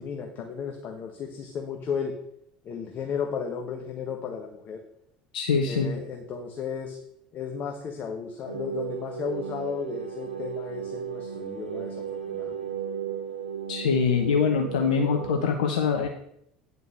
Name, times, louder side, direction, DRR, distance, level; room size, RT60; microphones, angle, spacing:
voice 1, 0.0-2.2 2.6-4.8 5.7-7.0 7.3-12.7, left 6 dB, 40° left, 3 dB, 1.2 m, -34 dB
voice 2, 5.3-5.9 13.7-16.1, left 6 dB, 70° left, 3 dB, 0.8 m, -24 dB
sound 1, 8.5-15.5, right 8 dB, 85° right, 0.7 m, -35 dB
9.6 x 5.1 x 6.4 m, 0.75 s
figure-of-eight pair, 65°, 4 cm